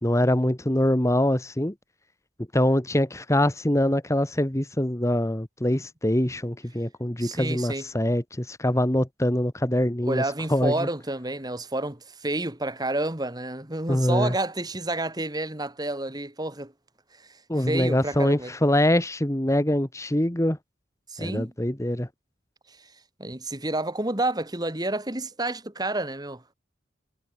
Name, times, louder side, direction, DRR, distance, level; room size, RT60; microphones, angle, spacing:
voice 1, 0.0-1.7 2.5-10.2 10.5-10.9 13.9-14.3 17.5-20.6 21.2-22.1, left 1 dB, 15° left, 1.5 m, -24 dB
voice 2, 7.2-7.9 10.0-16.7 17.1-18.5 21.1-21.5 22.7-22.9 23.2-26.4, right 2 dB, 20° right, 2.7 m, -30 dB
head